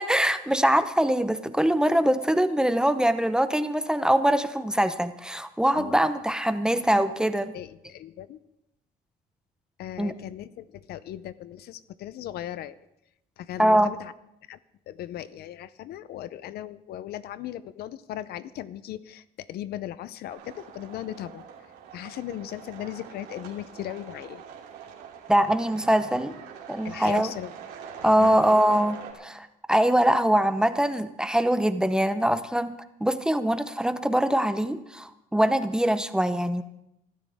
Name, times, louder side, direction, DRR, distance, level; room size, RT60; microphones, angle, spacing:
voice 1, 0.0-7.5 10.0-10.1 13.6-13.9 25.3-26.3 26.7-27.3 28.0-36.6, right 1 dB, 5° right, 11 dB, 0.8 m, -23 dB
voice 2, 7.5-8.4 9.8-12.7 13.4-14.1 14.5-14.6 14.9-21.5 21.9-24.4 26.8-27.5 28.2-28.5, left 12 dB, 70° left, 16 dB, 0.7 m, -37 dB
sound 1, 20.3-29.1, right 7 dB, 90° right, 3.1 m, -44 dB
24.5 x 12.5 x 3.6 m, 0.82 s
cardioid pair, 110°, 17 cm